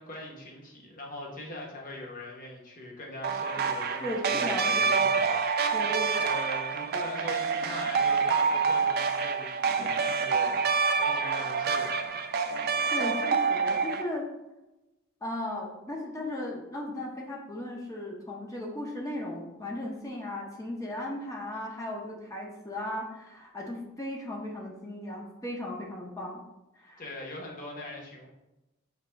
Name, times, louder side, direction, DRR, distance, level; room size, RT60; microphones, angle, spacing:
voice 1, 0.0-5.9 6.2-12.3 27.0-28.3, left 1 dB, 40° left, -1 dB, 1.0 m, -42 dB
sound 1, 3.2-14.0, right 5 dB, 50° right, 0.4 m, -27 dB
voice 2, 4.0-5.1 5.7-6.1 12.9-14.2 15.2-26.4 26.8-27.0, left 1 dB, 15° left, -2 dB, 0.6 m, -36 dB
5.1 x 2.7 x 3.3 m, 0.99 s
head